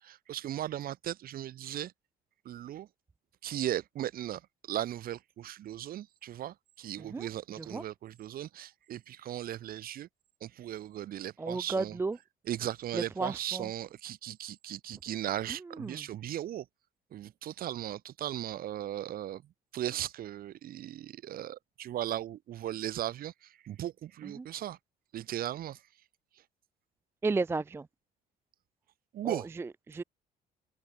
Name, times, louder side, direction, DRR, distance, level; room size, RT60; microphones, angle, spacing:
voice 1, 0.0-1.9 2.4-2.9 3.4-4.4 4.7-10.1 10.4-12.0 12.4-16.6 17.1-19.4 19.7-24.8 25.1-25.8 29.1-29.5, right 12 dB, 60° right, 1.5 m, -37 dB
voice 2, 11.4-12.2 12.9-13.7 15.8-16.0 24.4-24.5 27.2-27.9 29.2-30.0, right 3 dB, 15° right, 0.4 m, -33 dB
open air
cardioid pair, 110°, 17 cm